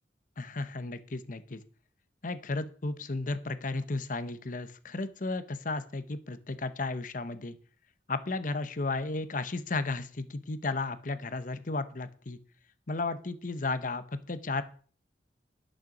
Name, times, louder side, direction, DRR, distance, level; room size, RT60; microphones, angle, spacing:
voice 1, 0.4-1.6 2.2-7.6 8.1-12.4 12.9-14.6, left 3 dB, 50° left, 12 dB, 0.9 m, -34 dB
10.5 x 6.6 x 6.0 m, 0.43 s
head